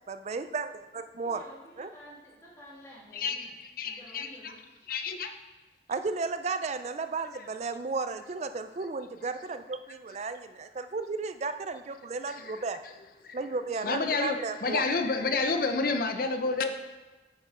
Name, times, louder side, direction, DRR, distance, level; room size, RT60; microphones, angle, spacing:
voice 1, 0.1-1.4 1.8-1.9 5.9-12.8 13.3-14.8, right 4 dB, 40° right, 10 dB, 0.4 m, -34 dB
voice 2, 1.2-3.5 3.8-4.9, equal, 15° left, -6 dB, 2.3 m, -51 dB
voice 3, 3.1-4.5 4.9-5.3 12.3-12.6 13.2-13.5 13.8-16.7, left 4 dB, 55° left, 7 dB, 0.6 m, -30 dB
8.2 x 5.3 x 5.0 m, 1.2 s
head